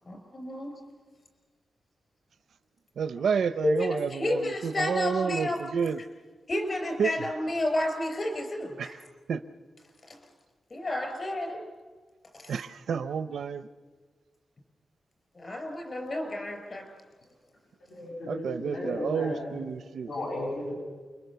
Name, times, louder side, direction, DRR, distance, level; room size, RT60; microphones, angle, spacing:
voice 1, 0.0-0.7 3.6-5.6 6.5-9.0 10.0-10.2 10.7-11.6 12.3-12.5 15.3-17.0, left 1 dB, 40° left, 5 dB, 4.7 m, -31 dB
voice 2, 3.0-6.0 7.0-7.1 8.8-9.0 9.3-9.4 12.5-13.7 18.3-20.1, right 6 dB, 85° right, 11 dB, 0.6 m, -30 dB
voice 3, 17.9-19.5 20.1-20.7, left 1 dB, 75° left, -3 dB, 7.9 m, -34 dB
28.5 x 23.0 x 6.8 m, 1.5 s
wide cardioid pair, 135°, 0 cm